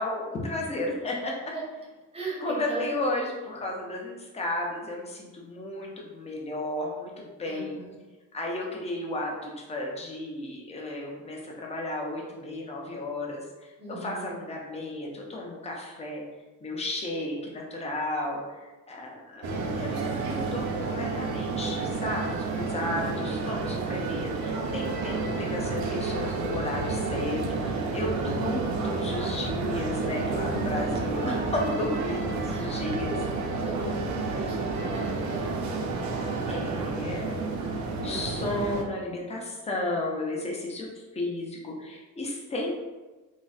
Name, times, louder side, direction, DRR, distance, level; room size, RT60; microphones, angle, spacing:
voice 1, 0.0-1.5 2.4-7.8 8.3-16.2 16.6-33.1 36.5-37.4 38.0-40.9 41.1-42.7, left 1 dB, 20° left, -1 dB, 0.5 m, -33 dB
voice 2, 2.1-2.9 7.5-7.9 13.8-14.3 22.7-23.1 30.5-31.0 32.5-32.7 33.1-37.4 38.0-38.5, right 2 dB, 20° right, -4 dB, 0.7 m, -39 dB
sound 1, 19.4-38.8, right 3 dB, 65° right, 0.5 m, -30 dB
3.9 x 2.0 x 2.3 m, 1.2 s
cardioid pair, 150°, 31 cm